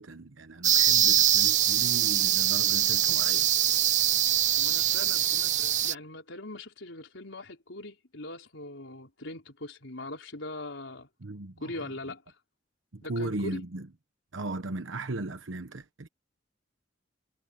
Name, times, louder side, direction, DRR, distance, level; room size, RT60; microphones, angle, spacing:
voice 1, 0.0-3.5 11.2-11.7 12.9-13.9 14.3-16.1, right 2 dB, 85° right, 1.1 m, -37 dB
sound 1, 0.6-5.9, right 11 dB, 40° right, 0.6 m, -23 dB
voice 2, 4.6-11.1 11.6-12.2 13.0-13.6, left 2 dB, 75° left, 4.5 m, -41 dB
head